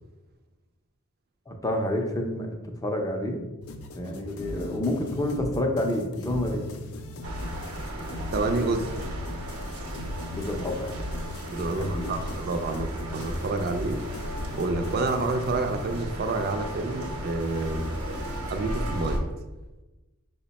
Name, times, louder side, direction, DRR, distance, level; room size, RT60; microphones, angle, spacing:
voice 1, 1.5-3.4 3.9-6.7 10.3-10.9 11.7-12.1, left 1 dB, 15° left, 3 dB, 0.5 m, -29 dB
sound 1, 3.6-18.6, left 2 dB, 80° left, 0.4 m, -40 dB
sound 2, 7.2-19.2, equal, 90° right, 0.8 m, -35 dB
voice 2, 8.3-8.9 11.5-14.0 14.5-17.9 18.5-19.3, right 3 dB, 50° right, 6 dB, 0.4 m, -28 dB
5.3 x 2.1 x 4.0 m, 1.1 s
head